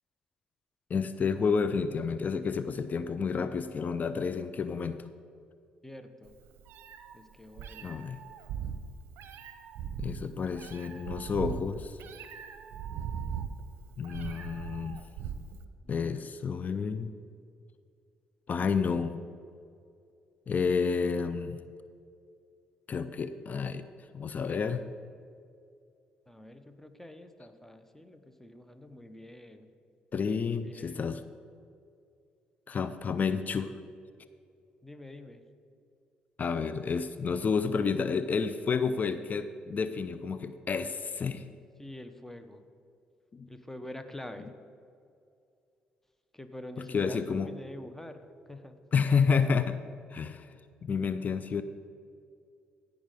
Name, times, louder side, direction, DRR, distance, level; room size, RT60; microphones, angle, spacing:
voice 1, 0.9-5.1 7.8-8.2 10.0-12.0 14.0-15.0 15.9-17.1 18.5-19.2 20.5-21.6 22.9-23.9 24.1-24.8 30.1-31.2 32.7-33.8 36.4-41.5 43.3-43.5 46.9-47.5 48.9-49.8 50.1-50.5 50.8-51.6, left 5 dB, 45° left, 11 dB, 0.5 m, -30 dB
voice 2, 5.8-6.4 7.1-8.0 15.8-16.2 26.3-29.7 30.4-31.0 34.8-35.4 41.8-42.6 43.5-44.5 46.3-48.8, left 1 dB, 10° left, 8 dB, 1.1 m, -46 dB
Meow, 6.3-15.6, right 8 dB, 70° right, 0.7 m, -40 dB
15.5 x 5.2 x 5.2 m, 2.4 s
hypercardioid pair, 55°, 4 cm